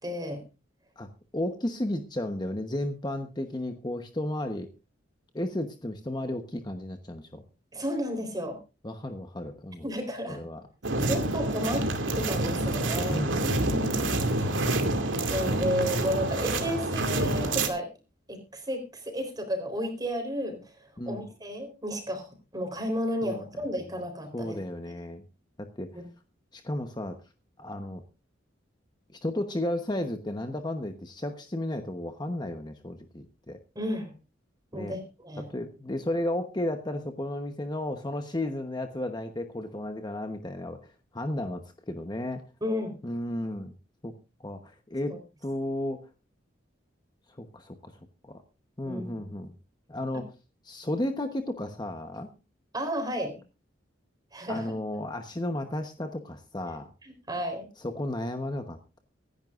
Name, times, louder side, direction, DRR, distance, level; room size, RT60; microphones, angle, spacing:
voice 1, 0.0-0.4 7.7-8.6 9.8-10.4 11.0-11.9 12.1-13.3 14.1-14.3 15.3-17.9 18.3-20.7 21.1-24.6 25.9-26.1 33.8-34.1 34.7-35.5 42.6-43.0 45.1-45.2 48.8-49.1 52.7-53.4 54.3-54.6 57.0-57.7, equal, 20° right, 6 dB, 4.0 m, -32 dB
voice 2, 1.0-4.7 5.3-7.4 8.8-9.9 10.3-10.6 11.0-11.2 13.1-14.3 21.0-21.3 23.2-23.4 24.3-25.2 25.6-26.0 26.5-27.2 27.6-28.0 29.1-33.6 34.7-35.0 35.5-42.4 43.0-43.7 44.0-44.1 44.4-45.1 45.4-46.1 47.4-47.9 48.2-48.4 48.8-49.5 49.9-50.3 50.6-52.3 54.5-56.9 57.8-59.0, left 1 dB, 20° left, 6 dB, 1.0 m, -33 dB
sound 1, 10.8-17.7, right 2 dB, 85° right, 2.4 m, -27 dB
24.5 x 11.0 x 2.5 m, 0.30 s
head